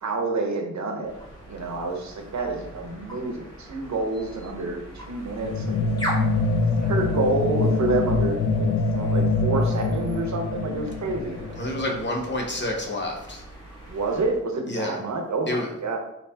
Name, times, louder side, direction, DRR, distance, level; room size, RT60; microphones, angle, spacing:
voice 1, 0.0-1.1 1.5-5.9 6.8-11.4 13.9-16.0, right 3 dB, 70° right, 3 dB, 0.8 m, -28 dB
sound 1, 1.0-14.4, equal, 15° left, 1.2 m, -40 dB
sound 2, 5.4-12.2, left 3 dB, 85° left, 0.6 m, -25 dB
voice 2, 11.6-13.4 14.7-15.0 15.5-15.7, left 1 dB, 40° left, 1 dB, 0.8 m, -28 dB
4.2 x 4.1 x 2.8 m, 0.80 s
wide cardioid pair, 155°, 29 cm